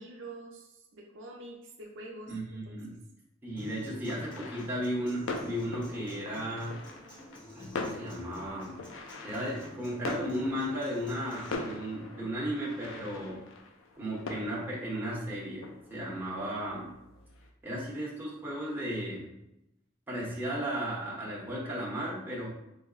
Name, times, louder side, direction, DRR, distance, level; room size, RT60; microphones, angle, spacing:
voice 1, 0.0-2.3 2.6-2.8, right 2 dB, 70° right, 0 dB, 0.6 m, -46 dB
voice 2, 2.3-2.9 3.4-6.8 7.5-8.7 9.2-13.4 13.9-16.9 17.6-19.3 20.1-22.5, equal, 10° right, -7 dB, 0.9 m, -35 dB
Human voice / Acoustic guitar, 3.6-11.5, left 1 dB, 25° left, 0.8 m, -51 dB
sound 1, 4.0-17.5, left 2 dB, 85° left, 0.5 m, -42 dB
3.9 x 2.0 x 3.8 m, 0.85 s
head